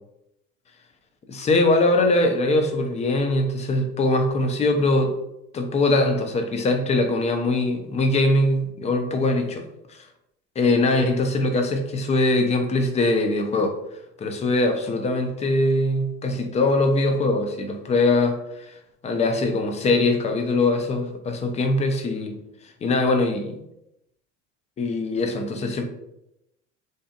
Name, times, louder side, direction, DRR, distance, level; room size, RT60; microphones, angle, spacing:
voice 1, 1.3-5.1 5.5-10.0 10.6-13.7 14.2-18.8 19.0-22.4 22.8-23.6 24.8-25.9, left 2 dB, 20° left, 5 dB, 0.4 m, -22 dB
2.6 x 2.5 x 2.4 m, 0.85 s
hypercardioid pair, 70°, 37 cm